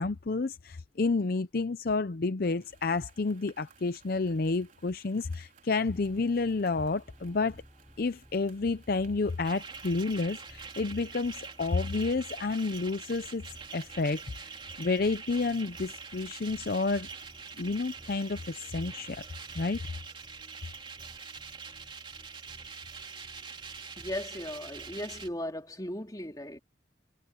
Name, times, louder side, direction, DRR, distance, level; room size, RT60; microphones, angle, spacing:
voice 1, 0.0-7.6 8.0-13.4 13.7-14.5 14.8-17.1 17.6-19.2 19.5-19.8, left 3 dB, 55° left, 0.6 m, -30 dB
sound 1, 2.6-19.6, right 5 dB, 45° right, 4.5 m, -61 dB
sound 2, 5.9-25.4, equal, 5° left, 4.3 m, -56 dB
sound 3, 9.3-25.3, right 5 dB, 25° right, 2.9 m, -45 dB
voice 2, 24.0-26.6, left 1 dB, 20° left, 2.7 m, -37 dB
head